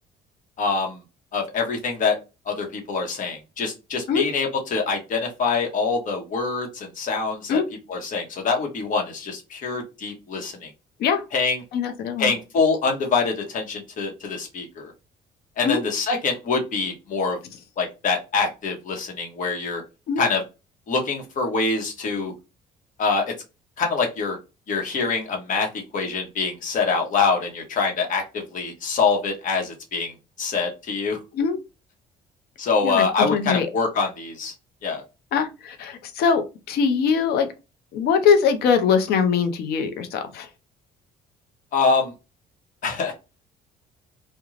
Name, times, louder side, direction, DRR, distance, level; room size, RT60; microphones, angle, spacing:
voice 1, 0.6-1.0 1.3-2.2 2.5-7.6 7.9-10.7 11.3-11.6 12.2-14.9 15.6-17.4 17.8-19.8 20.2-20.4 20.9-22.3 23.0-23.3 23.8-24.4 24.7-30.1 30.4-31.2 32.6-34.5 34.8-35.0 41.7-42.1 42.8-43.1, left 4 dB, 50° left, 1.0 m, -25 dB
voice 2, 11.7-12.3 15.6-15.8 20.1-20.2 31.3-31.6 32.8-33.7 35.3-37.5 37.9-40.5, left 6 dB, 70° left, 0.6 m, -22 dB
2.4 x 2.2 x 3.1 m
cardioid pair, 110°, 17 cm